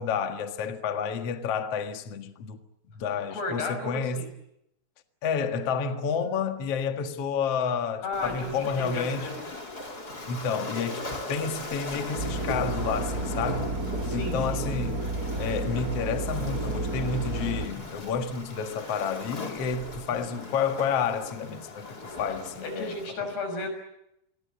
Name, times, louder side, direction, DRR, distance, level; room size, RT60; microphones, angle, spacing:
voice 1, 0.0-2.6 3.0-4.2 5.2-9.3 10.3-13.7 14.1-15.0 15.4-23.4, left 6 dB, 50° left, 2.2 m, -30 dB
voice 2, 3.3-4.3 8.0-9.5 14.0-14.6 22.6-23.7, left 2 dB, 85° left, 7.8 m, -34 dB
Waves surf, 8.1-23.1, left 2 dB, 25° left, 4.3 m, -39 dB
sound 1, 12.2-17.7, right 2 dB, 25° right, 4.1 m, -31 dB
28.0 x 22.5 x 8.4 m
omnidirectional pair, 4.5 m